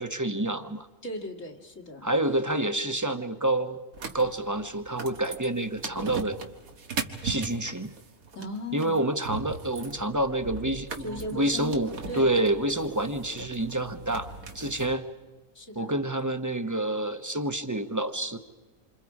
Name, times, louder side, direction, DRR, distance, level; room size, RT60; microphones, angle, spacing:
voice 1, 0.0-0.9 2.0-3.8 4.1-6.4 7.2-7.9 8.7-15.0 15.7-18.4, right 1 dB, 15° right, 8 dB, 0.9 m, -28 dB
voice 2, 1.0-2.1 8.3-9.0 11.0-12.4 15.5-15.9, left 1 dB, 65° left, 0 dB, 2.5 m, -37 dB
sound 1, 3.9-14.9, right 4 dB, 80° right, 2.0 m, -39 dB
28.0 x 26.0 x 4.8 m, 1.2 s
omnidirectional pair, 1.5 m